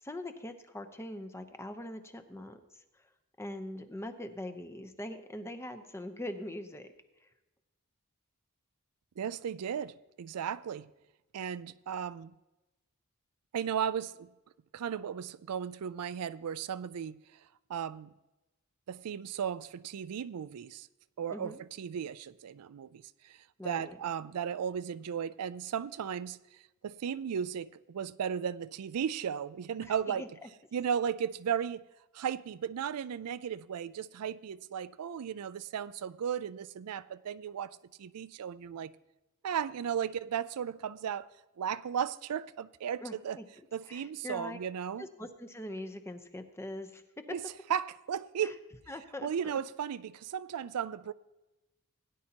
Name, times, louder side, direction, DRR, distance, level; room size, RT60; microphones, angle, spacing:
voice 1, 0.0-3.0 3.4-6.9 7.2-7.3 21.3-21.6 23.6-24.0 30.1-30.5 43.0-43.4 43.9-44.6 45.0-47.4 48.4-48.6 48.9-49.5, left 1 dB, 10° left, 0.7 m, -42 dB
voice 2, 9.2-10.9 11.3-12.3 13.5-14.3 14.7-17.2 17.7-18.1 18.9-20.9 21.2-23.4 23.6-26.4 26.8-30.3 30.7-31.8 32.1-38.9 39.4-41.3 41.6-43.4 43.7-45.1 47.3-47.4 47.7-48.6 49.2-51.1, right 8 dB, 90° right, 0.4 m, -35 dB
17.0 x 10.0 x 2.9 m
head